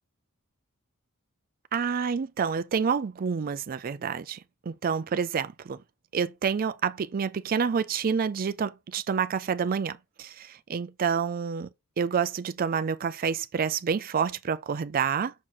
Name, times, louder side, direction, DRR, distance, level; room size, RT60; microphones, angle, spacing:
voice 1, 1.7-4.4 4.7-5.8 6.1-11.7 12.0-15.3, right 6 dB, 40° right, 0.4 m, -28 dB
6.1 x 4.3 x 4.0 m
head